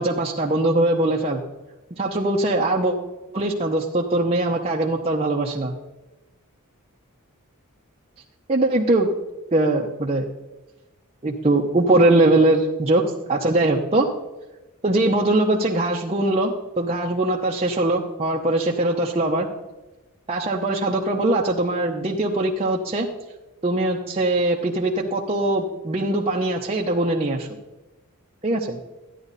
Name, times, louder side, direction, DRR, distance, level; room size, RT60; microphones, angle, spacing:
voice 1, 0.0-1.4 2.0-2.9 3.3-5.7 8.5-9.1 9.5-10.3 11.2-13.0 13.3-14.1 14.8-19.5 20.3-23.1 23.6-27.5 28.4-28.8, right 2 dB, 30° right, -2 dB, 0.9 m, -21 dB
13.0 x 10.0 x 4.1 m, 1.1 s
head